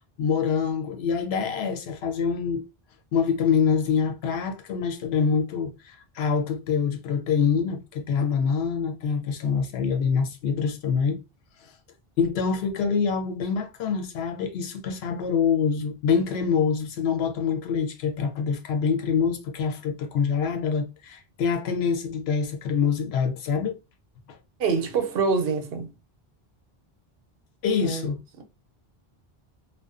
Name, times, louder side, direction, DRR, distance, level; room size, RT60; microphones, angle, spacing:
voice 1, 0.2-2.6 3.1-11.2 11.6-11.7 12.2-23.8 24.3-24.4 27.6-28.2, left 6 dB, 85° left, 0.8 m, -25 dB
voice 2, 24.6-25.9 27.8-28.1 28.4-28.5, right 5 dB, 70° right, 0.8 m, -25 dB
2.4 x 2.1 x 2.3 m
omnidirectional pair, 1.0 m